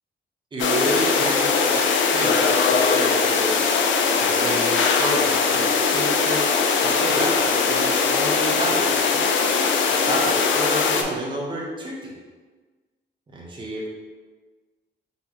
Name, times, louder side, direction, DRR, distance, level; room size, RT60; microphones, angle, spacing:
voice 1, 0.5-3.7 4.2-9.2 9.9-12.1 13.3-13.9, right 1 dB, 25° right, -4 dB, 0.8 m, -29 dB
sound 1, 0.6-11.0, left 5 dB, 75° left, 0.4 m, -20 dB
3.9 x 3.0 x 2.9 m, 1.4 s
cardioid pair, 140°, 20 cm